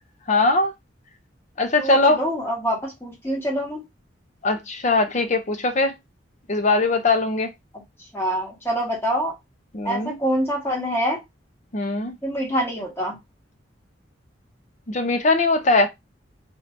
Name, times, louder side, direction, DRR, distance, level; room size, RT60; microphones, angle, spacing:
voice 1, 0.3-0.7 1.6-2.2 4.4-5.9 6.5-7.5 9.7-10.1 11.7-12.1 14.9-15.9, left 3 dB, 40° left, 0.6 m, -20 dB
voice 2, 1.8-3.8 7.7-7.8 8.1-9.3 9.8-11.2 12.2-13.2, equal, 15° left, 1.4 m, -25 dB
2.8 x 2.6 x 4.4 m
head